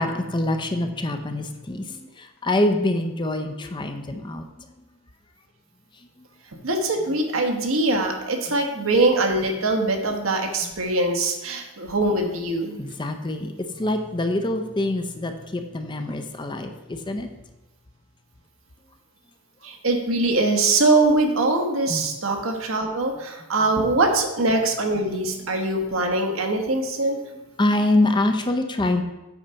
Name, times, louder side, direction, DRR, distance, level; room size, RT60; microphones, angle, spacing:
voice 1, 0.0-4.5 8.8-8.9 10.6-10.7 12.8-17.3 21.9-22.0 27.6-29.0, left 1 dB, 20° left, 6 dB, 0.5 m, -25 dB
voice 2, 6.6-12.8 19.6-27.2, right 2 dB, 70° right, 3 dB, 1.2 m, -22 dB
8.3 x 4.0 x 5.6 m, 1.0 s
head